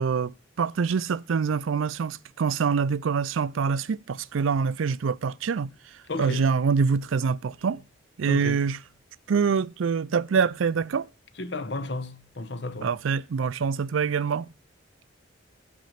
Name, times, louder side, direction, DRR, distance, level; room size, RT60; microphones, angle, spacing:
voice 1, 0.0-5.7 6.2-7.8 8.2-8.8 9.3-11.1 12.8-14.5, right 5 dB, 80° right, 0.4 m, -25 dB
voice 2, 6.1-6.5 8.3-8.6 11.4-12.9, left 2 dB, 60° left, 0.9 m, -33 dB
8.8 x 6.1 x 5.7 m
head